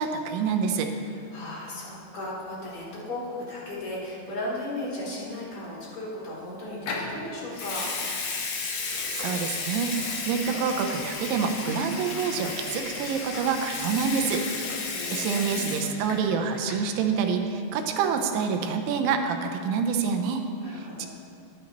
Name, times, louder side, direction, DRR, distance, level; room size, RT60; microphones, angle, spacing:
voice 1, 0.0-0.9 9.1-14.4 15.1-20.4 20.7-21.1, right 6 dB, 80° right, 5 dB, 3.0 m, -27 dB
voice 2, 0.9-7.9 14.8-15.9 20.6-21.1, left 1 dB, 35° left, -8 dB, 3.3 m, -36 dB
Water tap faucet / Sink (filling or washing) / Liquid, 6.9-7.1 7.5-16.3 16.6-16.9, left 4 dB, 85° left, 1.7 m, -33 dB
20.0 x 9.9 x 3.0 m, 2.5 s
omnidirectional pair, 5.6 m